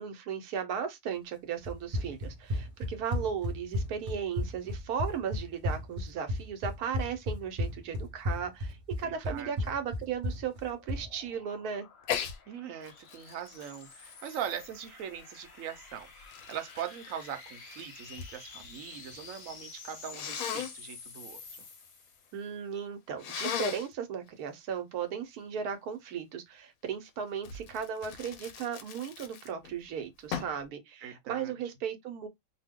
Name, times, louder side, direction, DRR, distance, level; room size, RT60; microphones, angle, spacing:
voice 1, 0.0-11.9 22.3-32.3, right 7 dB, 85° right, 1.2 m, -36 dB
Run, 1.6-11.1, left 1 dB, 30° right, 0.7 m, -34 dB
voice 2, 9.0-9.5 12.5-16.1 16.5-21.4 31.0-31.5, right 9 dB, 70° right, 1.0 m, -41 dB
sound 1, 10.3-22.5, left 4 dB, 50° left, 1.0 m, -50 dB
Sneeze, 12.0-12.4 12.8-15.2 15.9-18.3 18.6-19.2 20.1-20.7 23.2-23.9 27.4-29.7 30.3-30.6, left 8 dB, 80° left, 1.0 m, -37 dB
2.7 x 2.2 x 3.5 m
omnidirectional pair, 1.5 m